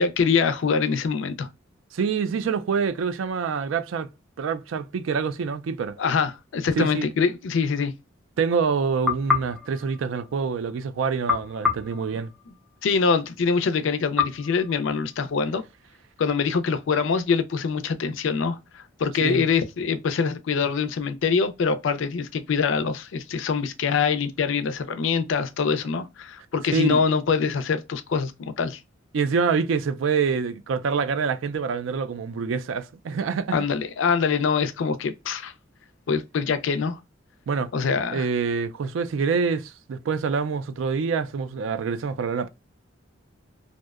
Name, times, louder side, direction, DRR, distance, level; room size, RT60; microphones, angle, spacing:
voice 1, 0.0-1.5 6.0-7.9 12.8-15.6 16.2-28.8 33.5-35.5 36.1-37.0 37.7-38.2, left 5 dB, 70° left, 0.4 m, -24 dB
voice 2, 1.9-4.1 4.4-6.0 6.8-7.1 8.4-12.3 19.2-19.5 26.7-27.0 29.1-33.6 37.5-37.7 38.1-42.5, right 5 dB, 75° right, 0.3 m, -26 dB
sound 1, 9.1-10.7 11.3-12.9 14.2-15.5, left 6 dB, ahead, 0.3 m, -29 dB
2.6 x 2.0 x 2.3 m
head